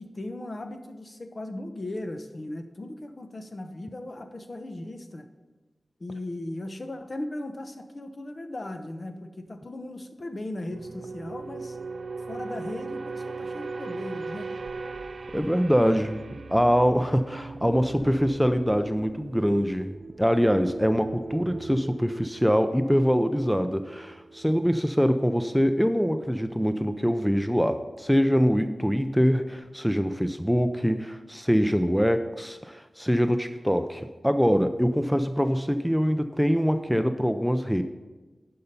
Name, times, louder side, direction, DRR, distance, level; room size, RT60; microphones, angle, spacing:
voice 1, 0.0-5.3 6.0-11.8 12.3-14.5, left 1 dB, 50° left, 7 dB, 0.9 m, -37 dB
sound 1, 10.7-25.3 25.6-25.9, right 4 dB, 75° right, 0.4 m, -39 dB
voice 2, 15.3-16.2 16.5-37.8, equal, ahead, 9 dB, 0.5 m, -24 dB
10.5 x 5.8 x 5.4 m, 1.2 s
cardioid pair, 50°, 0 cm